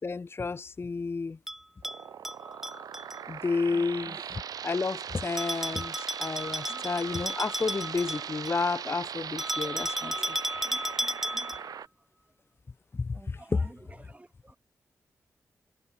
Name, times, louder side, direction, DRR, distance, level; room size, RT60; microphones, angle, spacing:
voice 1, 0.0-1.4 3.3-10.1 13.0-13.4, left 4 dB, 40° left, 0.7 m, -31 dB
Bell, 1.5-3.2 5.4-8.6 9.4-11.8, equal, 5° right, 0.6 m, -34 dB
sound 1, 1.8-11.9, right 8 dB, 80° right, 1.3 m, -39 dB
voice 2, 3.7-4.3 4.7-5.4 6.6-6.9 9.6-11.7 13.1-14.6, right 2 dB, 20° right, 2.6 m, -53 dB
cardioid pair, 50°, 6 cm